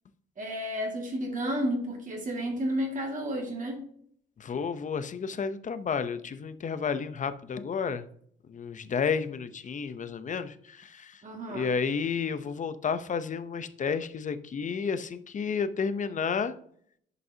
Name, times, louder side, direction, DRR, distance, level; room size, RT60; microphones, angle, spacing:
voice 1, 0.4-3.8 11.2-11.7, equal, 40° right, 0 dB, 2.0 m, -31 dB
voice 2, 4.4-8.0 8.5-11.2 11.5-16.5, left 6 dB, 40° left, 12 dB, 0.7 m, -31 dB
11.0 x 5.3 x 2.8 m, 0.63 s
cardioid pair, 90°, 20 cm